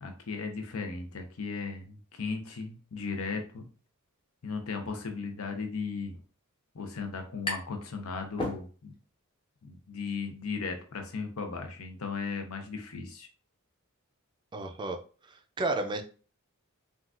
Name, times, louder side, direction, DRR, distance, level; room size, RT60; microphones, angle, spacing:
voice 1, 0.0-3.7 4.4-6.2 6.7-9.0 9.6-13.3, left 4 dB, 80° left, 5 dB, 0.7 m, -36 dB
sound 1, 6.3-6.4 6.6-7.9 8.2-9.1, left 1 dB, 25° left, 0.7 m, -36 dB
voice 2, 14.5-15.0 15.2-16.0, right 2 dB, 20° right, 5 dB, 0.4 m, -32 dB
3.8 x 2.3 x 2.4 m, 0.39 s
head